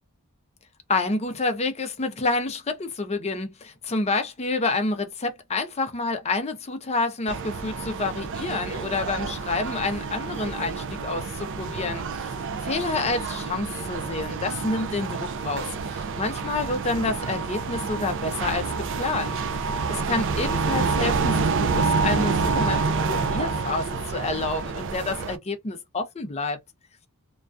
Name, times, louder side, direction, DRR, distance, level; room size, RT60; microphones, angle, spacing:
voice 1, 0.9-12.3 12.6-18.7 19.0-19.4 19.9-22.8 23.1-26.6, left 3 dB, 30° left, 0.5 m, -28 dB
sound 1, 7.3-25.4, right 4 dB, 55° right, 0.4 m, -28 dB
2.3 x 2.2 x 2.4 m
head